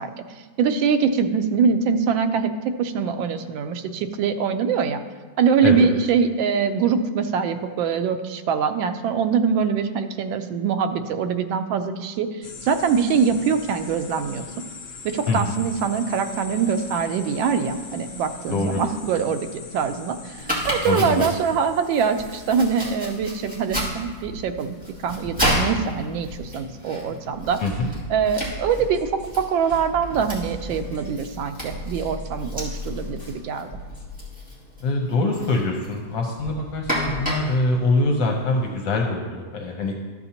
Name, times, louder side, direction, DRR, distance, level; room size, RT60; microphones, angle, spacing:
voice 1, 0.0-2.5 2.8-5.0 5.4-14.4 15.0-24.8 25.0-27.6 28.1-29.1 29.4-33.7, right 6 dB, 85° right, 8 dB, 1.4 m, -23 dB
sound 1, 12.4-22.8, left 4 dB, 55° left, 0.9 m, -41 dB
voice 2, 18.5-18.8 20.8-21.2 27.6-27.9 34.8-39.9, left 2 dB, 75° left, 1 dB, 1.4 m, -24 dB
Domestic sounds home sounds, 20.4-38.8, equal, 5° right, 1.9 m, -32 dB
sound 2, 27.3-34.2, equal, 30° left, 1.9 m, -37 dB
13.0 x 6.9 x 2.8 m, 1.4 s
omnidirectional pair, 2.0 m